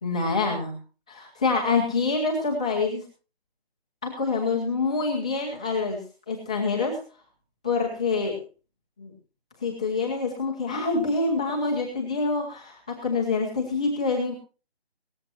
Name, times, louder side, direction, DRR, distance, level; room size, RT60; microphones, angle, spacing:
voice 1, 0.0-0.7 1.1-3.0 4.0-6.0 6.3-7.0 7.6-8.4 9.0-9.1 9.6-14.3, left 4 dB, 5° left, -4 dB, 0.8 m, -26 dB
18.0 x 14.0 x 2.9 m, 0.35 s
hypercardioid pair, 170°, 32 cm